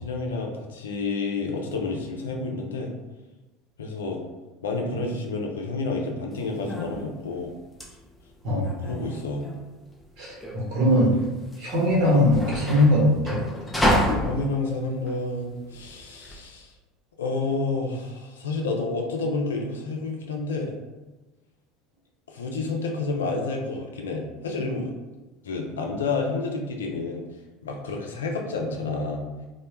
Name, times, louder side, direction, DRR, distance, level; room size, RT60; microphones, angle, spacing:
voice 1, 0.0-2.9 3.8-4.2 4.6-7.5 8.8-9.5 14.2-16.7 17.2-20.8 22.3-24.9 25.4-27.3 27.6-29.2, left 3 dB, 85° left, 2 dB, 0.4 m, -29 dB
sound 1, 6.3-16.4, equal, 10° left, 0.5 m, -30 dB
voice 2, 10.2-11.2 11.6-13.4, left 1 dB, 60° right, -4 dB, 0.9 m, -21 dB
2.1 x 2.0 x 3.0 m, 1.1 s
hypercardioid pair, 75°, 0 cm